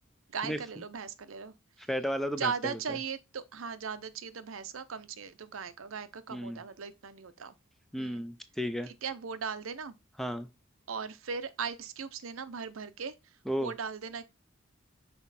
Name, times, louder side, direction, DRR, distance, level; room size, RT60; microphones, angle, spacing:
voice 1, 0.3-1.5 1.8-1.9 2.4-7.5 8.0-8.2 8.9-10.0 10.9-14.2, right 6 dB, 85° right, 0.7 m, -38 dB
voice 2, 1.9-2.5 6.3-6.6 7.9-8.9 10.2-10.5 13.5-13.7, equal, ahead, 0.5 m, -33 dB
6.1 x 4.3 x 4.1 m
head